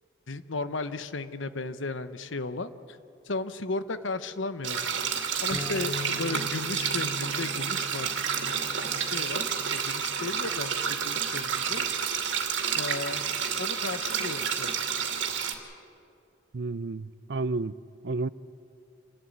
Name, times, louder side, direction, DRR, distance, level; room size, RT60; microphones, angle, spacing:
voice 1, 0.3-3.0 3.3-4.8 5.4-8.1 8.3-9.4 9.7-11.9 12.7-13.2 13.6-14.7, left 3 dB, 90° left, 1.0 m, -35 dB
sound 1, 4.6-15.5, right 7 dB, 80° right, 2.5 m, -30 dB
Bass guitar, 5.5-9.9 10.6-11.7, left 1 dB, 5° left, 1.9 m, -42 dB
voice 2, 16.5-17.7 18.0-18.3, right 3 dB, 60° right, 0.5 m, -31 dB
28.0 x 12.5 x 9.4 m
head